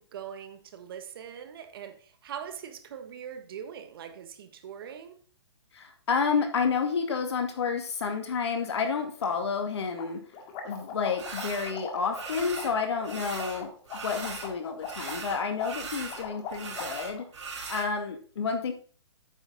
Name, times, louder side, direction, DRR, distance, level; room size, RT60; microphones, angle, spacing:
voice 1, 0.0-5.2, right 8 dB, 55° right, 1.4 m, -42 dB
voice 2, 5.7-10.2 10.6-13.7 14.0-17.2 17.7-18.7, left 5 dB, 70° left, 2.3 m, -30 dB
sound 1, 9.2-9.3 9.6-9.7 10.0-17.2, left 6 dB, 30° left, 1.9 m, -41 dB
sound 2, 11.2-11.7 12.1-12.7 13.0-14.5 14.8-17.9, right 4 dB, 80° right, 3.6 m, -39 dB
8.8 x 7.0 x 4.0 m
hypercardioid pair, 145°, 15 cm